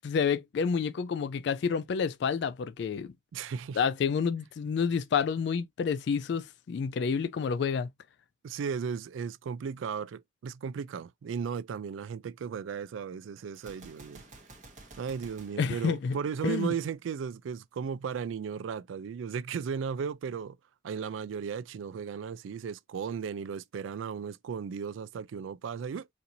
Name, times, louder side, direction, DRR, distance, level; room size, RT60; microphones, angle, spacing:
voice 1, 0.0-3.1 3.7-7.9 15.6-16.2 16.4-16.7, left 6 dB, 60° left, 0.3 m, -29 dB
voice 2, 3.3-3.8 8.4-14.2 15.0-20.6 20.8-26.1, right 6 dB, 80° right, 0.3 m, -35 dB
Gunshot gunfire, 13.5-16.7, right 2 dB, 40° right, 0.9 m, -52 dB
4.2 x 2.6 x 2.7 m
head